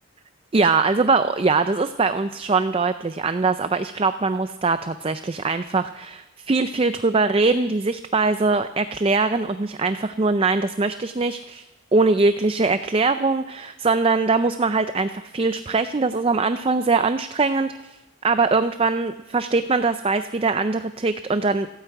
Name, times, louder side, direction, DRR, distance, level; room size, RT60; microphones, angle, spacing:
voice 1, 0.5-11.7 11.9-18.0 18.2-21.7, right 3 dB, 25° right, 10 dB, 0.4 m, -22 dB
16.0 x 9.4 x 7.8 m, 1.1 s
head